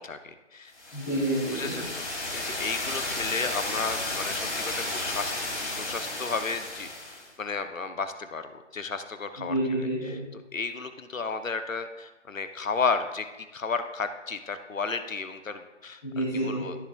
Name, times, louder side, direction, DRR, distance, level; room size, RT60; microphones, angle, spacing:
voice 1, 0.0-0.7 1.5-5.3 5.6-9.5 10.1-16.8, left 4 dB, 80° left, 9 dB, 0.9 m, -33 dB
sound 1, 0.8-7.3, left 2 dB, 60° left, 2.6 m, -33 dB
voice 2, 0.9-1.7 9.4-10.1 16.0-16.6, right 1 dB, 5° left, -13 dB, 0.9 m, -28 dB
13.0 x 6.9 x 2.3 m, 1.1 s
figure-of-eight pair, 160°, 39 cm